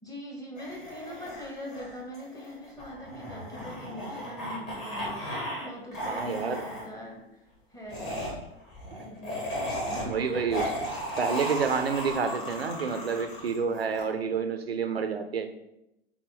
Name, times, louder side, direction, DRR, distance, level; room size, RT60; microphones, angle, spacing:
voice 1, 0.0-8.3 9.0-10.5, equal, 10° left, 0 dB, 0.8 m, -43 dB
sound 1, 0.6-5.7 5.9-6.9 7.9-14.0, equal, 35° left, 1.7 m, -36 dB
voice 2, 6.1-6.6 8.9-9.0 10.0-10.8 11.2-15.5, right 5 dB, 85° right, 8 dB, 0.5 m, -29 dB
5.8 x 2.1 x 3.9 m, 0.87 s
figure-of-eight pair, 90°, 30 cm